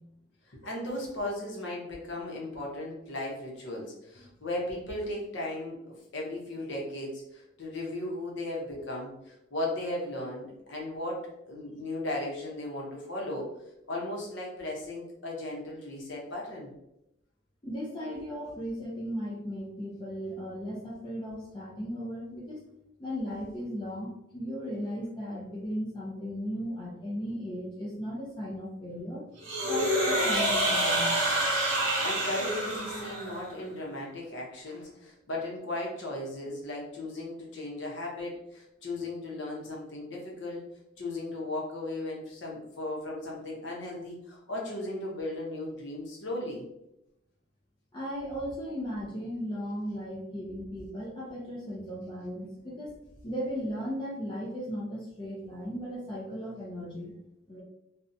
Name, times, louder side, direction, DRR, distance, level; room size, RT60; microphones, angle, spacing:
voice 1, 0.4-13.5 13.9-16.7 32.0-40.7 41.0-46.6, left 1 dB, 65° left, -3 dB, 0.8 m, -36 dB
voice 2, 17.6-22.7 23.0-29.2 29.6-31.1 47.9-52.9 53.2-57.1 57.5-57.6, equal, 25° left, -5 dB, 0.4 m, -36 dB
sound 1, 29.4-33.5, right 1 dB, 80° right, 0.9 m, -27 dB
2.5 x 2.1 x 2.6 m, 0.85 s
head